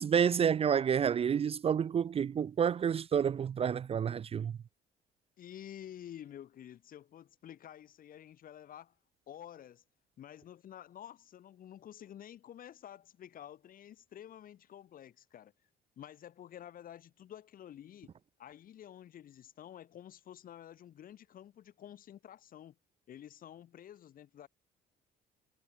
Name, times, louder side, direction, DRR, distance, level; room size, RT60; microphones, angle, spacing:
voice 1, 0.0-4.5, right 8 dB, 35° right, 0.6 m, -29 dB
voice 2, 5.4-8.9 9.3-9.8 10.2-15.5 16.0-18.1 18.4-22.8 23.1-24.5, left 10 dB, 55° left, 4.7 m, -50 dB
cardioid pair, 110°, 17 cm